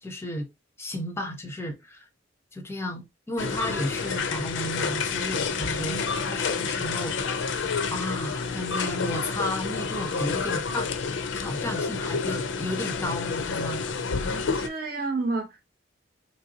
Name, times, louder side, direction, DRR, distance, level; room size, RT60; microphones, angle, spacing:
voice 1, 0.0-0.5 0.8-2.1 2.5-7.6 7.9-10.9 11.3-13.9, left 1 dB, 15° left, 0.6 m, -33 dB
sound 1, 3.4-14.7, left 5 dB, 70° left, 0.4 m, -29 dB
voice 2, 5.7-6.1 14.2-15.7, right 3 dB, 50° right, 0.7 m, -32 dB
3.1 x 2.7 x 2.7 m
head